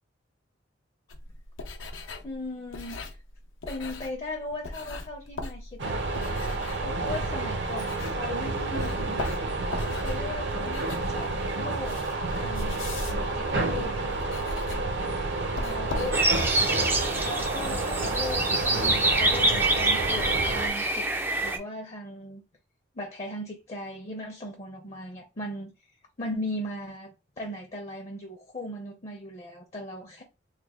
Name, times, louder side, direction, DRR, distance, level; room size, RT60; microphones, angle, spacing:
sound 1, 1.1-8.4 8.7-16.6, left 2 dB, 85° left, 0.6 m, -39 dB
voice 1, 2.2-3.2 3.6-6.0 6.8-9.2 10.0-11.3 11.6-12.0 12.3-12.8 13.3-14.1 15.6-16.2 17.2-21.1 21.4-22.4 22.9-25.7 26.2-30.2, left 1 dB, 35° left, 0.6 m, -37 dB
sound 2, 5.8-20.7, right 2 dB, 65° right, 0.7 m, -30 dB
sound 3, 16.1-21.6, right 2 dB, 10° right, 0.3 m, -26 dB
3.2 x 2.2 x 3.6 m
head